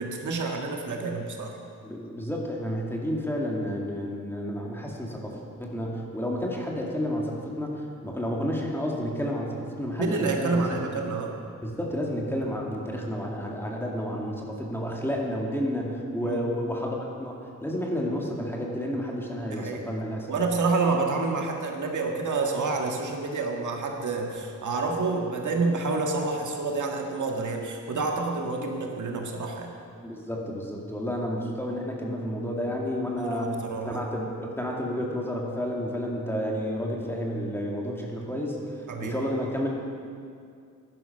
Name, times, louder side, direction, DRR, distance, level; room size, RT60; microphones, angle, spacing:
voice 1, 0.0-1.5 10.0-11.3 16.2-16.6 19.5-19.9 20.3-29.7 33.2-34.0 38.9-39.1, right 3 dB, 65° right, 1 dB, 1.8 m, -28 dB
voice 2, 1.8-10.7 11.6-20.3 30.0-38.6 39.0-39.7, equal, 5° left, -2 dB, 2.1 m, -31 dB
15.0 x 11.5 x 5.6 m, 2.3 s
wide cardioid pair, 115°, 32 cm